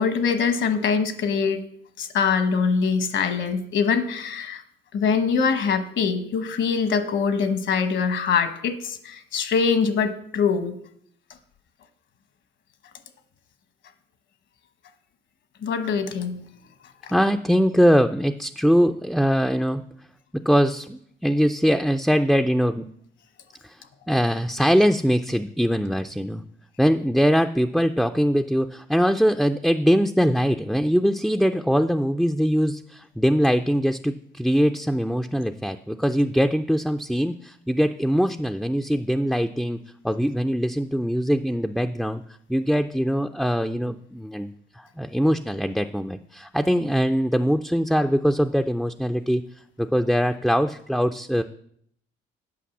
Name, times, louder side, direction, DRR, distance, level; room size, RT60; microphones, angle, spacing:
voice 1, 0.0-1.6 2.0-4.6 4.9-10.8 15.6-16.4 17.0-17.1, left 5 dB, 70° left, 10 dB, 1.1 m, -23 dB
voice 2, 17.1-19.8 20.3-22.9 23.6-26.4 26.8-39.8 40.0-42.2 42.5-49.4 49.8-51.4, equal, ahead, 6 dB, 0.3 m, -22 dB
8.5 x 5.3 x 7.1 m, 0.68 s
cardioid pair, 90°, 20 cm